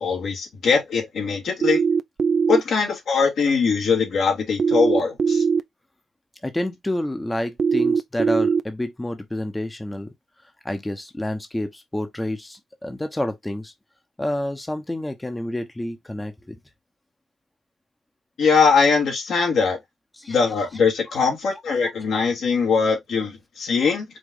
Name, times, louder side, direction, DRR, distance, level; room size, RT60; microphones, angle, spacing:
voice 1, 0.0-1.8 2.5-5.4 18.4-19.8 20.3-24.0, left 5 dB, 80° left, 2.1 m, -21 dB
sound 1, 1.6-2.6 4.6-5.6 7.6-8.6, right 5 dB, 55° right, 0.5 m, -20 dB
voice 2, 6.4-10.1 10.6-13.7 14.2-16.6 20.1-20.7 21.2-21.3, left 1 dB, 15° left, 0.9 m, -29 dB
5.1 x 2.4 x 3.9 m
cardioid pair, 85°, 0 cm